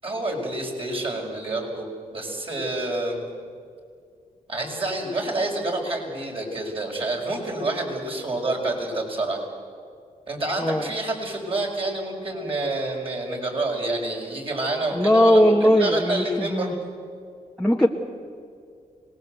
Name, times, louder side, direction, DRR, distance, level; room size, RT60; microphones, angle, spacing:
voice 1, 0.0-3.2 4.5-9.5 10.3-16.7, right 2 dB, 40° right, 0 dB, 6.2 m, -28 dB
voice 2, 10.6-10.9 14.9-16.7 17.6-17.9, equal, 5° left, -1 dB, 1.5 m, -19 dB
25.5 x 19.5 x 8.1 m, 2.3 s
cardioid pair, 70°, 14 cm